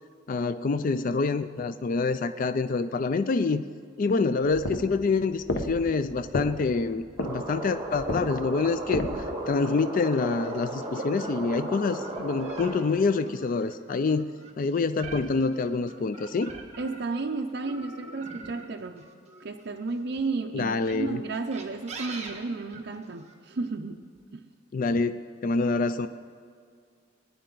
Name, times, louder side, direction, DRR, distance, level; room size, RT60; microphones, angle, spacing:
voice 1, 0.3-3.6 4.0-14.3 14.6-16.5 20.5-21.2 24.7-26.1, left 4 dB, 45° left, 11 dB, 0.4 m, -26 dB
sound 1, 4.6-9.5, left 1 dB, 80° left, 1.1 m, -33 dB
sound 2, 7.2-12.8, right 1 dB, 20° right, 2.1 m, -35 dB
sound 3, 10.4-17.2 17.6-20.0 20.7-23.3, right 3 dB, 35° right, 1.4 m, -44 dB
voice 2, 16.8-19.0 19.4-24.0 24.3-24.5, right 3 dB, 60° right, 3 dB, 0.6 m, -33 dB
20.0 x 10.0 x 3.9 m, 2.2 s
head